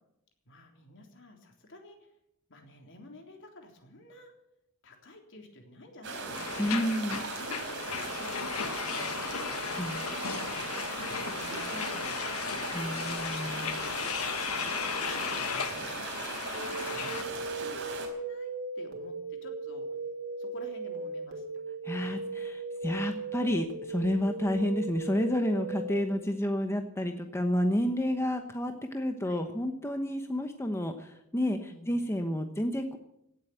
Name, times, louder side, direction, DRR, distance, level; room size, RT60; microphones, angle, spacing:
voice 1, 0.4-2.1 2.5-4.3 4.8-8.5 8.8-13.2 13.8-14.4 15.3-15.5 16.1-19.9 20.4-22.1 29.2-29.4 31.7-31.9, left 2 dB, 60° left, 3 dB, 3.5 m, -51 dB
sound 1, 6.0-18.1, right 4 dB, 60° right, 4.2 m, -38 dB
sound 2, 6.3-17.2, left 6 dB, 90° left, 1.4 m, -35 dB
voice 2, 6.6-7.2 9.8-10.1 12.7-13.8 14.7-14.9 16.1-16.4 21.8-33.0, left 1 dB, 10° left, 5 dB, 1.0 m, -30 dB
sound 3, 16.5-26.1, right 3 dB, 85° right, 3.2 m, -38 dB
17.0 x 8.1 x 9.2 m, 0.79 s
head